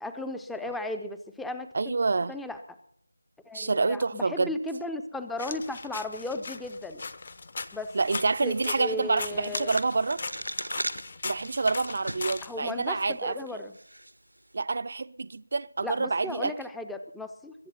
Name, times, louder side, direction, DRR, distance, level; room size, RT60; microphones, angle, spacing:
voice 1, 0.0-1.9 2.3-2.6 3.5-7.0 7.7-7.9 8.4-9.7 12.4-13.8 15.8-17.5, left 2 dB, ahead, 0.6 m, -35 dB
voice 2, 1.7-2.3 3.5-4.5 7.9-10.2 11.2-13.6 14.5-16.5, right 3 dB, 40° right, 0.5 m, -28 dB
sound 1, 5.4-13.0, left 4 dB, 40° left, 0.9 m, -39 dB
sound 2, 9.4-12.4 12.8-12.9 13.7-14.1, right 1 dB, 80° right, 0.9 m, -36 dB
22.5 x 7.9 x 5.7 m
figure-of-eight pair, 165°, 0 cm